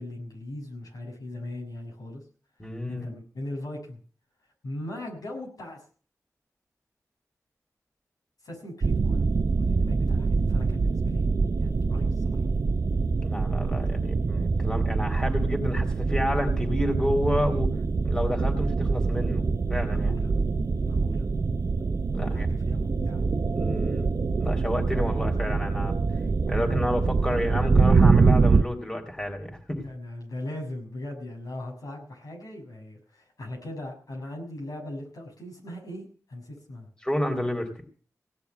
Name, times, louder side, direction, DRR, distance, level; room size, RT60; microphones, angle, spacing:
voice 1, 0.0-2.2 2.9-4.0 4.6-5.8 8.4-9.3 9.5-11.3 11.6-12.4 19.8-20.3 20.8-21.3 22.2-23.2 29.8-36.9, left 1 dB, 85° left, -1 dB, 6.7 m, -39 dB
voice 2, 2.6-3.1 13.2-17.7 18.0-20.1 22.1-22.5 23.6-24.1 24.4-26.0 26.5-29.8 37.0-37.7, left 1 dB, 10° left, 2 dB, 4.1 m, -30 dB
sound 1, 8.8-28.6, right 4 dB, 60° right, 0.7 m, -24 dB
17.5 x 7.0 x 8.4 m, 0.43 s
wide cardioid pair, 65°, 6 cm